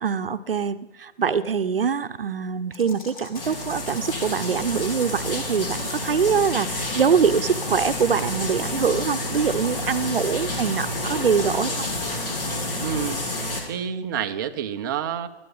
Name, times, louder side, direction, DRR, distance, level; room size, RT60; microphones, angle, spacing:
voice 1, 0.0-11.9, right 6 dB, 55° right, 11 dB, 0.9 m, -24 dB
sound 1, 2.7-12.9, left 3 dB, 30° left, 3.1 m, -42 dB
sound 2, 3.4-13.6, left 1 dB, 55° left, 4.6 m, -29 dB
voice 2, 12.8-13.2 13.7-15.3, right 8 dB, 20° right, 7 dB, 0.7 m, -28 dB
20.0 x 13.0 x 5.5 m, 1.0 s
figure-of-eight pair, 135°, 34 cm